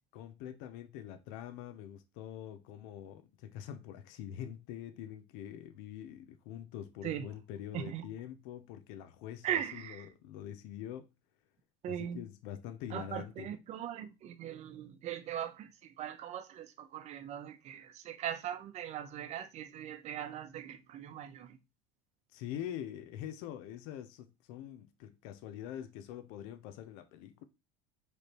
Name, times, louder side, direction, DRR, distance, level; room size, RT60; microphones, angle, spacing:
voice 1, 0.1-11.1 11.9-13.5 22.3-27.4, left 10 dB, 70° left, 0.6 m, -44 dB
voice 2, 7.7-8.0 9.4-10.0 11.8-12.2 12.9-15.7 16.0-21.5, right 10 dB, 50° right, 0.7 m, -39 dB
5.0 x 3.2 x 3.0 m
supercardioid pair, 95°, 15 cm